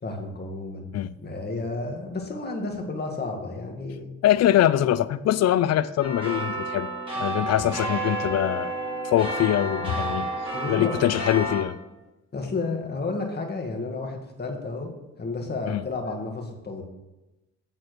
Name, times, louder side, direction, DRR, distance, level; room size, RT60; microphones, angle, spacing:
voice 1, 0.0-0.9 1.2-4.1 7.6-7.8 10.5-10.9 12.3-14.9 15.2-16.8, left 3 dB, 35° left, 1.8 m, -32 dB
voice 2, 4.2-6.9 7.2-8.7 9.0-10.3 10.7-11.8 15.7-15.8, left 12 dB, 60° left, 0.4 m, -23 dB
sound 1, 6.0-11.6, right 2 dB, 15° right, 2.5 m, -30 dB
8.8 x 4.3 x 6.4 m
cardioid pair, 90°, 30 cm